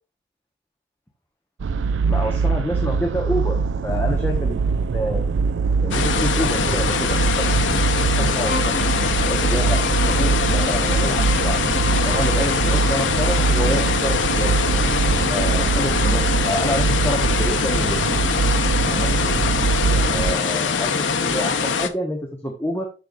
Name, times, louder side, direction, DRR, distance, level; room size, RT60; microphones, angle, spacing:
sound 1, 1.6-20.3, right 4 dB, 85° right, 0.4 m, -22 dB
voice 1, 2.1-4.6 4.9-5.2 5.8-8.8 9.2-9.8 10.2-11.6 12.0-14.6 15.3-18.0 18.8-19.3 19.9-22.9, equal, 10° left, 0 dB, 1.2 m, -28 dB
sound 2, 5.9-21.9, left 5 dB, 85° left, 1.0 m, -23 dB
Bowed string instrument, 8.4-16.3, left 2 dB, 50° left, 2.3 m, -32 dB
14.0 x 4.6 x 2.5 m, 0.32 s
head